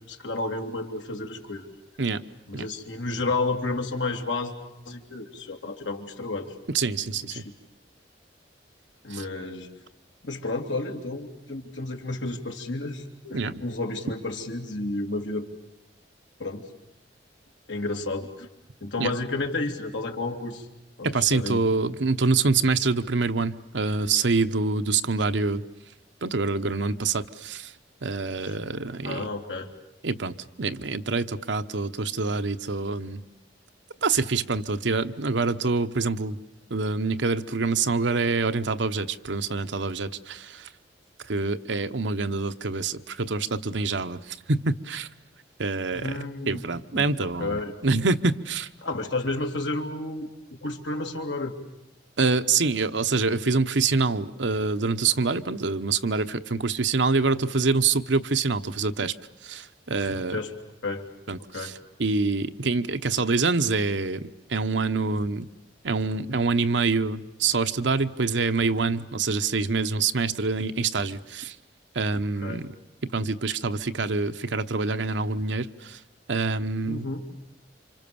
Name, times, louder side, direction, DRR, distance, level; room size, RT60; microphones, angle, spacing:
voice 1, 0.0-1.7 2.5-4.5 4.9-6.5 7.1-7.4 9.0-9.7 10.2-15.5 16.4-16.7 17.7-18.5 18.8-20.7 21.0-21.6 28.4-28.5 29.0-29.7 45.9-46.6 46.9-47.7 48.8-50.3 50.6-51.5 60.2-60.5 60.8-61.1 61.5-61.7 72.4-72.6 76.9-77.2, left 2 dB, 85° left, 3 dB, 2.9 m, -31 dB
voice 2, 6.7-7.4 9.1-9.2 13.3-13.6 19.0-19.1 21.0-25.6 26.2-27.7 28.0-29.3 30.0-33.2 34.0-36.4 36.7-40.7 41.3-45.1 45.6-46.2 46.5-48.7 52.2-59.1 59.4-60.4 61.3-65.4 65.8-71.5 71.9-72.7 73.1-76.0 76.3-77.1, right 4 dB, 75° right, 9 dB, 1.0 m, -26 dB
28.5 x 26.5 x 7.0 m, 0.90 s
head